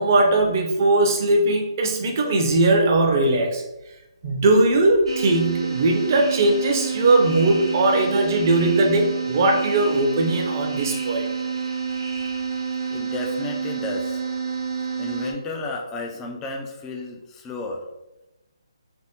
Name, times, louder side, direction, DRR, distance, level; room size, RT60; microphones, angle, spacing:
voice 1, 0.0-3.6 4.2-11.3, right 2 dB, 35° right, 2 dB, 0.6 m, -19 dB
sound 1, 5.1-15.3, right 6 dB, 65° right, 0.9 m, -28 dB
voice 2, 12.9-14.2 15.0-17.8, left 3 dB, 10° left, 1 dB, 0.3 m, -32 dB
3.4 x 2.1 x 2.8 m, 0.98 s
hypercardioid pair, 160°, 3 cm